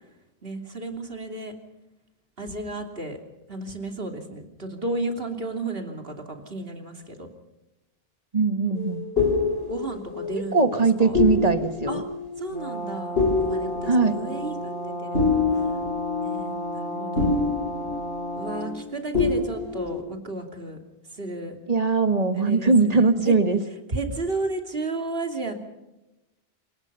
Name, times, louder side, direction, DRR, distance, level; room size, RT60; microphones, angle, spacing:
voice 1, 0.4-1.5 2.4-3.2 3.5-7.3 9.7-11.1 11.9-12.0 12.4-15.4 16.2-17.5 18.3-20.8 21.1-21.5 22.3-23.3 23.9-25.5, right 2 dB, 65° right, 4 dB, 3.2 m, -33 dB
voice 2, 8.3-9.0 10.5-12.0 13.8-14.1 21.7-23.6, right 4 dB, 40° right, 8 dB, 1.7 m, -20 dB
sound 1, 8.8-18.9 19.1-20.0, left 4 dB, 75° left, 3.4 m, -27 dB
Brass instrument, 12.5-18.8, equal, 55° left, 7.6 m, -33 dB
27.5 x 19.0 x 5.6 m, 0.97 s
omnidirectional pair, 1.0 m